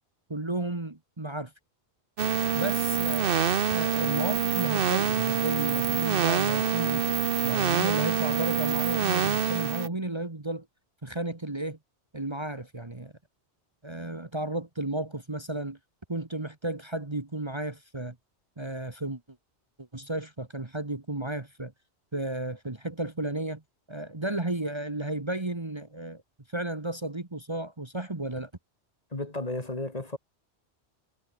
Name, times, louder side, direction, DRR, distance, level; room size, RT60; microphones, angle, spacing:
voice 1, 0.3-1.5 2.5-3.4 3.7-7.1 7.4-10.6 11.0-11.8 12.1-13.1 13.8-15.8 16.1-18.1 18.6-19.2 19.8-21.7 22.1-23.6 23.9-26.2 26.5-28.5, right 2 dB, 25° right, 1.6 m, -33 dB
sound 1, 2.2-9.9, right 8 dB, 55° right, 1.0 m, -26 dB
voice 2, 29.1-30.2, left 2 dB, 35° left, 2.4 m, -33 dB
omnidirectional pair, 1.1 m